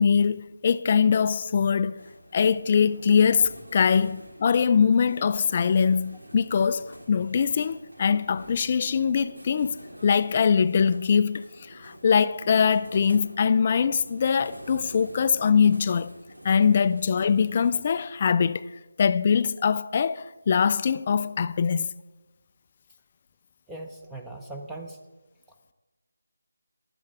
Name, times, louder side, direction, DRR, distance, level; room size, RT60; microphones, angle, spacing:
voice 1, 0.0-2.0 2.3-16.1 16.4-18.7 19.0-21.9, left 6 dB, 30° left, 0.3 m, -22 dB
sound 1, 2.0-18.0, equal, 85° right, 2.5 m, -47 dB
voice 2, 23.7-25.0, right 2 dB, 5° right, 0.7 m, -39 dB
15.0 x 11.5 x 3.6 m
figure-of-eight pair, 160°, 0 cm